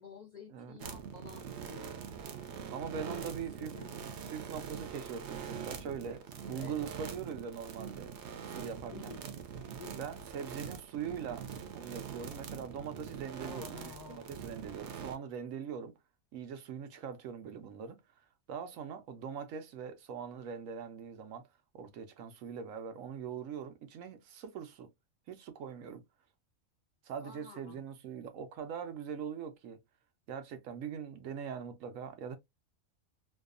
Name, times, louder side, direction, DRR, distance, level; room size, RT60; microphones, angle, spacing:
voice 1, 0.0-2.0 3.1-3.3 3.6-3.9 6.5-6.8 8.9-9.2 9.8-10.0 13.4-14.6 27.2-27.8, left 5 dB, 50° left, 0.5 m, -50 dB
sound 1, 0.8-15.2, right 7 dB, 65° right, 0.8 m, -44 dB
voice 2, 2.7-3.8 4.3-8.1 8.4-9.1 9.9-11.5 11.7-16.0 16.3-18.0 18.5-21.4 21.7-24.9 25.3-26.0 27.0-29.8 30.3-32.4, right 7 dB, 90° right, 1.0 m, -42 dB
2.7 x 2.3 x 2.4 m
omnidirectional pair, 1.3 m